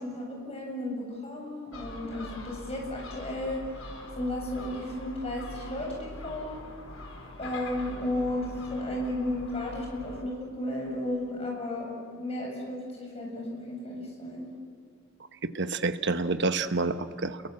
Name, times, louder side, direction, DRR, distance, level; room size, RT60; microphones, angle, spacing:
voice 1, 0.0-3.6 4.2-6.6 7.4-14.5, left 1 dB, 30° left, -1 dB, 7.6 m, -34 dB
Gull seagull, 1.7-10.2, left 2 dB, 80° left, 4.6 m, -43 dB
voice 2, 15.4-17.4, right 3 dB, 55° right, 10 dB, 1.1 m, -28 dB
30.0 x 23.0 x 7.5 m, 2.3 s
head